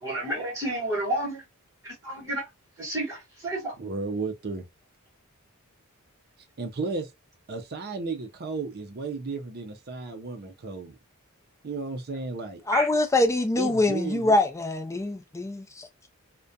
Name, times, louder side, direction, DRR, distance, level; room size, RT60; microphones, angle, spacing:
voice 1, 0.0-1.4 1.8-2.4 2.8-3.7 12.7-12.9, right 1 dB, 15° right, 1.1 m, -30 dB
voice 2, 3.8-4.6 6.6-7.1 7.5-11.0 11.6-12.6 13.6-14.3, right 3 dB, 45° right, 0.5 m, -33 dB
voice 3, 12.7-15.9, left 2 dB, 15° left, 0.3 m, -24 dB
2.4 x 2.2 x 2.6 m
head